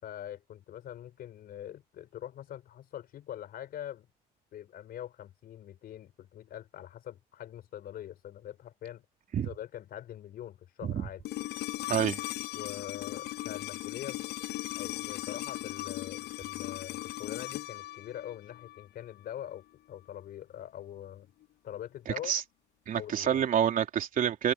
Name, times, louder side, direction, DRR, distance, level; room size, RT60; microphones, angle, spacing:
voice 1, 0.0-4.1 4.5-9.0 9.4-11.2 12.5-14.2 14.8-21.3 21.6-22.3 22.9-23.4, left 11 dB, 65° left, 4.8 m, -43 dB
sound 1, 11.2-19.3 21.4-21.5, left 16 dB, 80° left, 6.8 m, -38 dB
voice 2, 11.9-12.2 22.1-22.4 22.9-24.5, right 9 dB, 55° right, 3.3 m, -28 dB
cardioid pair, 110°, 17 cm